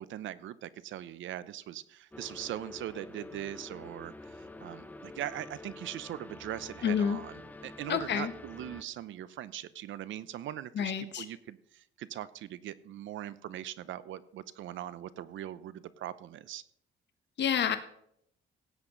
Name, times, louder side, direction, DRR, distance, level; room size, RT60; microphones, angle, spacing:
voice 1, 0.0-16.6, right 12 dB, 75° right, 17 dB, 0.7 m, -41 dB
sound 1, 2.1-8.8, left 2 dB, 10° left, 0.8 m, -48 dB
voice 2, 6.8-7.2 7.9-8.3 10.7-11.2 17.4-17.8, left 8 dB, 60° left, 8 dB, 1.3 m, -28 dB
16.5 x 8.1 x 3.9 m, 0.72 s
cardioid pair, 90°, 20 cm